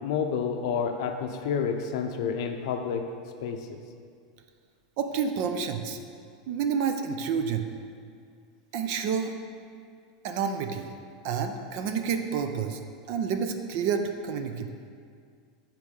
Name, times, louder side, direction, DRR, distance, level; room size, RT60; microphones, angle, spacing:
voice 1, 0.0-3.1 3.4-3.8, left 6 dB, 55° left, 5 dB, 0.6 m, -29 dB
voice 2, 5.0-6.0 6.5-7.6 8.7-9.3 10.2-10.9 11.2-12.8 13.1-14.7, right 6 dB, 40° right, 7 dB, 0.5 m, -29 dB
7.2 x 4.5 x 4.8 m, 2.2 s
supercardioid pair, 175°, 3 cm